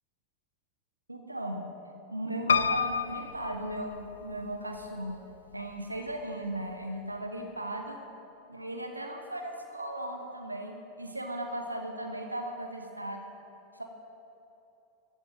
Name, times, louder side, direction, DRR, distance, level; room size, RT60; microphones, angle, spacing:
voice 1, 1.1-1.6 2.1-8.0 8.5-13.3 13.7-13.8, right 1 dB, 85° right, 3 dB, 1.2 m, -37 dB
Piano, 2.5-4.5 5.1-5.8 6.1-6.2 6.4-6.5, left 6 dB, 70° left, 0.5 m, -29 dB
15.0 x 7.8 x 9.2 m, 3.0 s
figure-of-eight pair, 90°, 0 cm